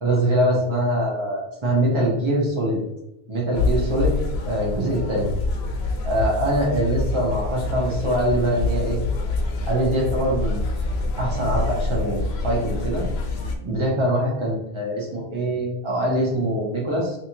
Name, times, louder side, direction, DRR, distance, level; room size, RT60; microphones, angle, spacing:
voice 1, 0.0-2.8 3.3-4.2 4.4-5.3 6.0-9.0 9.6-10.6 11.2-13.1 13.6-17.2, right 1 dB, 30° right, -3 dB, 1.0 m, -23 dB
sound 1, 3.5-13.6, left 3 dB, 80° left, 0.8 m, -26 dB
4.0 x 2.9 x 2.9 m, 0.89 s
omnidirectional pair, 1.1 m